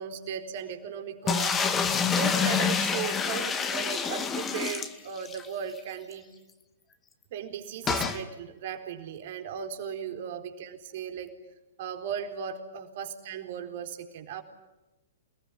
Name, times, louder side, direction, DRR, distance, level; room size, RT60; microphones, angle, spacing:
voice 1, 0.0-1.7 2.0-6.3 7.3-11.3 11.8-14.4, right 7 dB, 50° right, 5 dB, 4.2 m, -37 dB
sound 1, 1.3-5.5 5.8-5.9 6.1-6.2 7.9-8.2, left 6 dB, 20° left, 2.3 m, -27 dB
28.5 x 20.0 x 9.9 m, 1.0 s
figure-of-eight pair, 110°, 0 cm